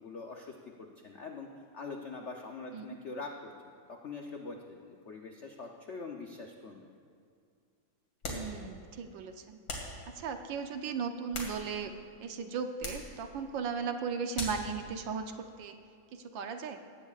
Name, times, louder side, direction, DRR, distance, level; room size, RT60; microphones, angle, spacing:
voice 1, 0.0-1.5 1.7-3.5 3.9-6.9, left 4 dB, 80° left, 2 dB, 0.6 m, -43 dB
sound 1, 8.2-8.6 9.7-10.0 11.1-12.0 12.8-13.1 14.3-14.7, left 2 dB, 55° left, 2.6 m, -39 dB
voice 2, 8.3-9.6 10.1-11.9 12.2-15.8 16.1-16.8, right 6 dB, 70° right, 6 dB, 1.4 m, -37 dB
19.0 x 15.5 x 2.4 m, 2.3 s
omnidirectional pair, 2.3 m